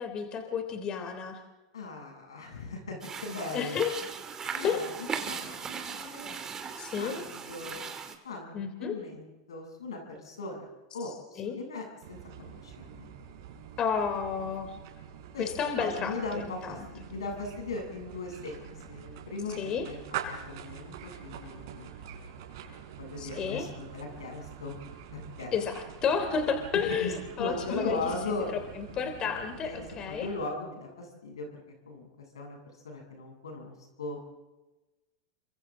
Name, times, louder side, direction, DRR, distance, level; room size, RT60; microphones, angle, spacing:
voice 1, 0.0-1.4 3.5-4.0 4.6-4.8 6.8-7.2 8.5-8.9 11.4-11.6 13.8-14.7 15.4-16.8 19.6-19.9 23.2-23.7 25.5-28.0 28.5-30.3, left 6 dB, 35° left, 6 dB, 3.3 m, -31 dB
voice 2, 1.7-3.8 4.5-4.8 5.2-6.3 6.9-7.8 8.2-10.7 10.9-13.1 15.3-15.5 15.8-20.0 20.3-21.9 23.0-24.8 25.1-25.5 26.7-27.1 27.4-28.5 29.6-31.6 31.9-32.1 32.3-32.6 32.8-34.2, left 3 dB, 90° left, 2 dB, 7.9 m, -38 dB
sound 1, 3.0-8.2, right 6 dB, 25° right, 2.7 m, -38 dB
sound 2, 12.0-30.6, right 8 dB, 65° right, 4.6 m, -45 dB
29.5 x 25.0 x 3.8 m, 1.1 s
hypercardioid pair, 105°, 2 cm